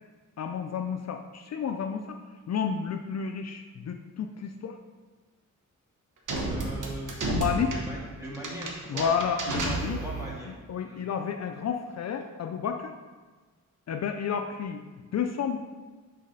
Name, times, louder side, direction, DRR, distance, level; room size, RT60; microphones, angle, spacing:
voice 1, 0.4-2.2 2.5-4.8 7.3-7.7 8.9-10.0 10.5-12.9 13.9-14.8 15.1-15.6, left 7 dB, 55° left, 5 dB, 0.4 m, -31 dB
sound 1, 6.3-10.4, right 2 dB, 75° right, 1.1 m, -32 dB
voice 2, 6.5-9.2 9.8-10.5 10.8-11.1, equal, 10° right, -4 dB, 1.7 m, -40 dB
6.5 x 4.0 x 5.3 m, 1.4 s
wide cardioid pair, 135°, 31 cm